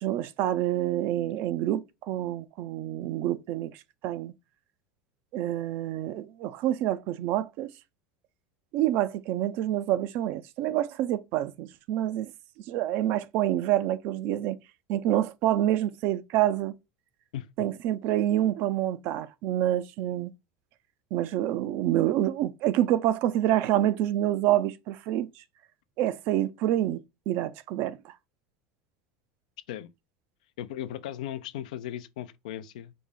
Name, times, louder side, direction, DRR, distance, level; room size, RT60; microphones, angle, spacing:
voice 1, 0.0-3.8 4.0-4.3 5.3-7.7 8.7-12.3 12.7-14.6 14.9-16.8 17.6-20.3 21.1-25.3 26.0-28.1, right 13 dB, 60° right, 0.4 m, -27 dB
voice 2, 30.6-32.9, left 11 dB, 80° left, 0.4 m, -37 dB
5.0 x 2.1 x 3.5 m
supercardioid pair, 100°, 4 cm